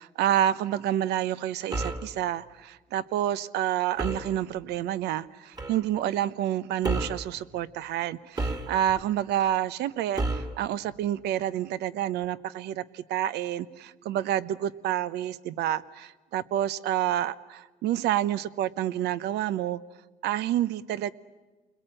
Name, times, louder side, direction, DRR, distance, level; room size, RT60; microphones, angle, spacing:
voice 1, 0.0-19.8 20.2-21.1, right 12 dB, 80° right, 16 dB, 0.8 m, -28 dB
sound 1, 1.7-2.1 4.0-4.3 5.6-5.8 6.8-7.3 8.4-9.0 10.2-10.6, right 2 dB, 25° right, 2.1 m, -30 dB
29.5 x 21.5 x 9.0 m, 1.2 s
cardioid pair, 110°, 17 cm